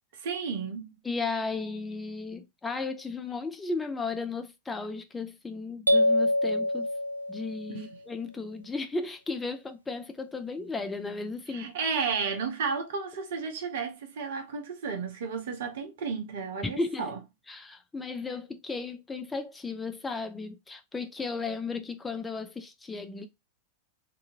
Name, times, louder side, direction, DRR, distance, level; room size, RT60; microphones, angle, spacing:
voice 1, 0.1-0.9 7.7-7.9 11.5-17.2, right 5 dB, 55° right, 0.7 m, -33 dB
voice 2, 1.0-6.9 7.3-11.7 16.6-17.0 17.5-23.3, left 3 dB, 10° left, 0.4 m, -35 dB
sound 1, 5.9-7.8, left 1 dB, 80° right, 0.3 m, -25 dB
2.7 x 2.6 x 2.5 m
figure-of-eight pair, 90°, 0 cm